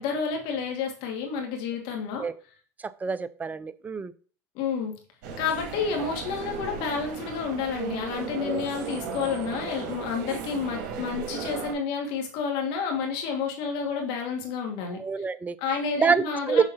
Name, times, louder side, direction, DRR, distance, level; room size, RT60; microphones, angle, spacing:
voice 1, 0.0-2.2 4.5-4.9 5.4-15.0 15.6-16.6, left 6 dB, 65° left, 2.6 m, -30 dB
voice 2, 3.0-4.1 8.4-8.6 14.9-15.6 16.0-16.6, right 5 dB, 20° right, 0.6 m, -26 dB
sound 1, 5.2-11.7, right 6 dB, 65° right, 2.4 m, -36 dB
7.3 x 3.8 x 5.7 m
supercardioid pair, 100°, 9 cm